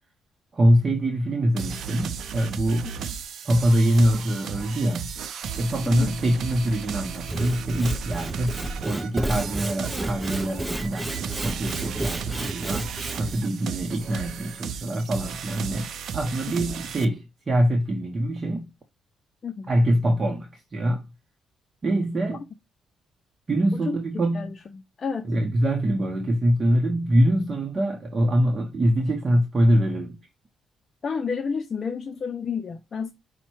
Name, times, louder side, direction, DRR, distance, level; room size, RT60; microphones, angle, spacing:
voice 1, 0.5-2.9 3.4-5.1 5.6-8.6 8.8-18.7 19.7-21.0 21.8-22.5 23.5-24.6 25.2-30.2, right 1 dB, 35° right, 0.7 m, -24 dB
sound 1, 1.6-17.0, right 7 dB, 70° right, 0.5 m, -35 dB
voice 2, 5.9-6.2 19.4-19.7 23.7-24.0 24.3-25.3 31.0-33.1, left 5 dB, 40° left, 0.5 m, -30 dB
Sawing / Wood, 7.1-13.4, right 1 dB, 10° right, 0.4 m, -32 dB
5.4 x 2.1 x 4.4 m
cardioid pair, 90°, 0 cm